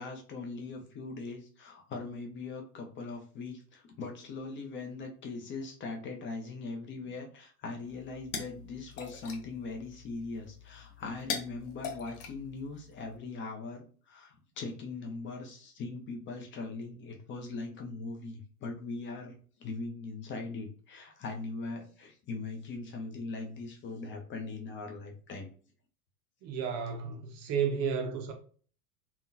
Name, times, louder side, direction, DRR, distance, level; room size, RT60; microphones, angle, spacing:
voice 1, 0.0-25.5, left 3 dB, 25° left, 0.6 m, -40 dB
sound 1, 7.9-13.2, left 6 dB, 55° left, 0.8 m, -43 dB
voice 2, 26.4-28.3, right 6 dB, 35° right, 0.5 m, -32 dB
3.6 x 2.3 x 2.6 m
hypercardioid pair, 85°, 45 cm